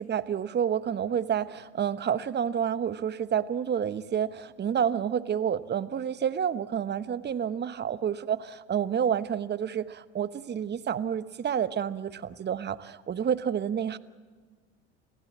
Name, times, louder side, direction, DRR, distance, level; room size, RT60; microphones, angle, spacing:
voice 1, 0.0-14.0, right 8 dB, 30° right, 14 dB, 1.1 m, -29 dB
28.0 x 15.5 x 7.5 m, 1.5 s
hypercardioid pair, 80°, 35 cm